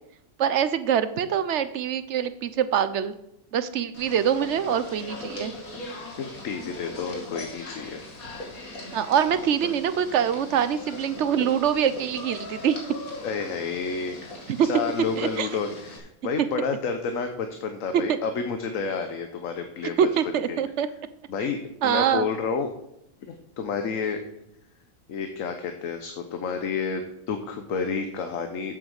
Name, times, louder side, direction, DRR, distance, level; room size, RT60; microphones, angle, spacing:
voice 1, 0.4-3.1 3.5-5.5 8.9-12.8 14.5-14.7 15.2-15.5 18.1-18.2 20.0-20.9 21.8-22.3, right 8 dB, 60° right, 13 dB, 1.0 m, -24 dB
sound 1, 3.9-16.0, left 2 dB, 90° left, 2.5 m, -40 dB
voice 2, 6.2-8.0 13.2-14.2 14.7-20.6 21.3-22.7 23.2-24.2 25.1-28.7, left 5 dB, 70° left, 6 dB, 1.3 m, -30 dB
8.2 x 7.7 x 6.5 m, 0.81 s
omnidirectional pair, 1.4 m